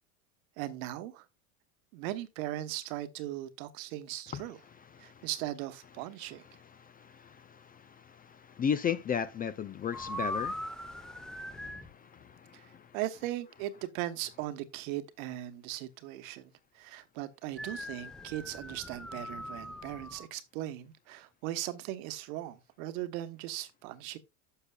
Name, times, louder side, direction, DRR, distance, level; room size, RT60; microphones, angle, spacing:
voice 1, 0.6-1.2 1.9-4.6 5.0-6.4 12.5-24.2, right 14 dB, 70° right, 1.2 m, -38 dB
voice 2, 4.9-5.3 6.5-13.0, left 7 dB, 20° left, 0.4 m, -37 dB
sound 1, 9.9-11.9 17.6-20.3, left 1 dB, ahead, 0.9 m, -40 dB
11.5 x 6.6 x 2.3 m
supercardioid pair, 100°, 42 cm